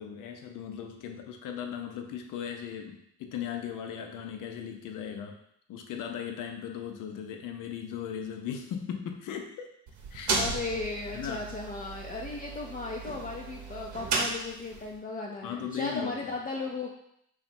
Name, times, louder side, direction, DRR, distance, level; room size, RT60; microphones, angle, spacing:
voice 1, 0.0-5.4 5.7-9.7 10.1-10.4 11.1-11.5 15.4-16.3, left 8 dB, 65° left, 4 dB, 0.6 m, -37 dB
sound 1, 9.9-15.0, right 3 dB, 55° right, 0.8 m, -34 dB
voice 2, 10.4-16.9, left 3 dB, 25° left, -1 dB, 0.5 m, -36 dB
2.9 x 2.3 x 4.2 m, 0.73 s
hypercardioid pair, 55°, 35 cm